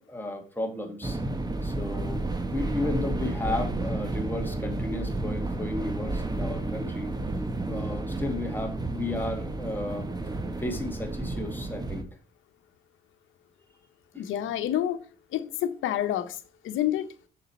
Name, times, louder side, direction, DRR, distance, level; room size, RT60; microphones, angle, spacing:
voice 1, 0.1-1.2 1.6-7.1 7.7-10.1 10.6-12.1 14.1-14.2, left 2 dB, 10° left, 2.0 m, -33 dB
sound 1, 1.0-12.0, right 2 dB, 20° right, 1.1 m, -31 dB
voice 2, 14.2-15.0 15.3-16.4 16.6-17.1, left 11 dB, 85° left, 1.0 m, -28 dB
6.6 x 6.2 x 4.4 m
cardioid pair, 90°, 20 cm